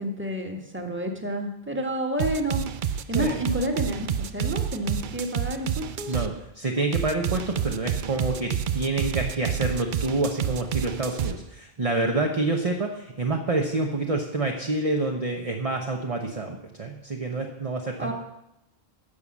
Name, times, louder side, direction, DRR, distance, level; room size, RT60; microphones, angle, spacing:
voice 1, 0.0-6.2 18.0-18.1, right 1 dB, 10° right, 2 dB, 1.6 m, -30 dB
sound 1, 2.2-6.3 6.9-11.3, right 9 dB, 55° right, 0.7 m, -29 dB
voice 2, 6.1-18.1, right 2 dB, 35° right, 2 dB, 1.0 m, -27 dB
11.5 x 7.0 x 7.3 m, 0.86 s
omnidirectional pair, 1.1 m